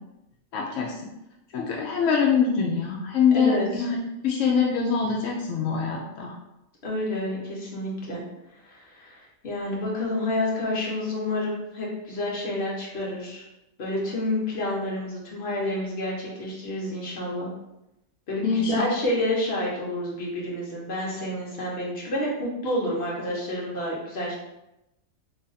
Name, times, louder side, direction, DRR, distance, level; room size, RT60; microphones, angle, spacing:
voice 1, 0.5-0.9 1.5-4.0 4.2-6.3 18.4-18.8, left 6 dB, 70° left, -3 dB, 0.9 m, -24 dB
voice 2, 3.3-3.9 6.8-8.2 8.6-13.4 13.8-17.5 18.3-24.3, left 1 dB, 50° left, -4 dB, 1.2 m, -29 dB
3.2 x 2.5 x 4.0 m, 0.90 s
omnidirectional pair, 1.4 m